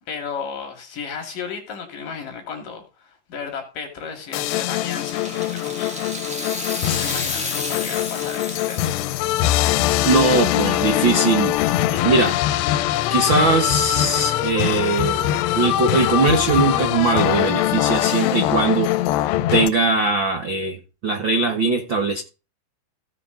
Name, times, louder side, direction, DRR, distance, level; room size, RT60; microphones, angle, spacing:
voice 1, 0.0-6.1 6.9-8.9 10.4-10.6, left 6 dB, 55° left, 4 dB, 3.9 m, -34 dB
sound 1, 4.3-19.7, left 14 dB, 90° left, 2.8 m, -22 dB
Rattle (instrument), 4.6-9.8 10.1-10.2 11.1-11.2, equal, 5° right, 0.8 m, -33 dB
voice 2, 10.0-12.3 13.1-18.9 19.1-20.8 21.0-22.2, right 3 dB, 80° right, 4 dB, 1.0 m, -20 dB
16.5 x 6.9 x 3.9 m, 0.31 s
omnidirectional pair, 4.7 m